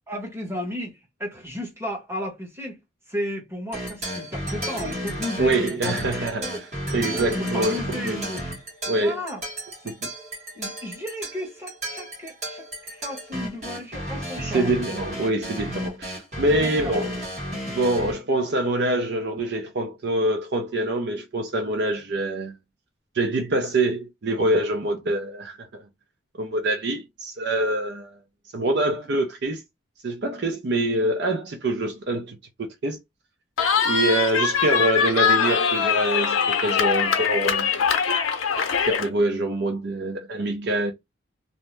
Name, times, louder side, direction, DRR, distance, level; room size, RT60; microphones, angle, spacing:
voice 1, 0.1-2.8 3.1-6.6 7.1-8.4 8.9-9.4 9.8-9.9 10.5-14.7 16.5-17.0 29.0-29.1, equal, 15° right, 1.1 m, -34 dB
sound 1, 3.7-18.1, equal, 35° right, 1.4 m, -33 dB
voice 2, 5.4-8.2 8.8-9.2 9.9-10.0 14.4-17.1 17.7-22.5 23.1-25.8 26.4-28.2 28.5-29.6 30.0-33.0 33.8-37.7 38.9-40.9, right 1 dB, 55° right, 0.5 m, -25 dB
Cheering, 33.6-39.1, left 6 dB, 85° left, 0.6 m, -22 dB
2.7 x 2.0 x 3.2 m
head